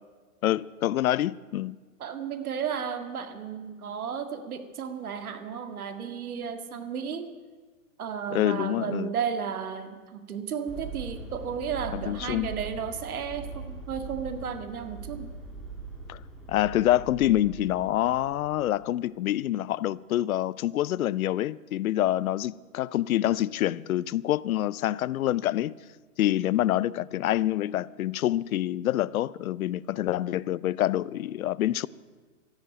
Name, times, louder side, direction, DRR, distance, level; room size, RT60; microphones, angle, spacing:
voice 1, 0.4-1.8 8.3-9.1 11.9-12.5 16.1-16.2 16.5-25.8 26.2-31.9, left 13 dB, 75° left, 0.6 m, -26 dB
voice 2, 2.0-7.3 8.0-15.3, right 7 dB, 85° right, 2.0 m, -33 dB
sound 1, 10.7-19.0, right 4 dB, ahead, 2.3 m, -41 dB
14.0 x 11.0 x 9.0 m
hypercardioid pair, 155°, 42 cm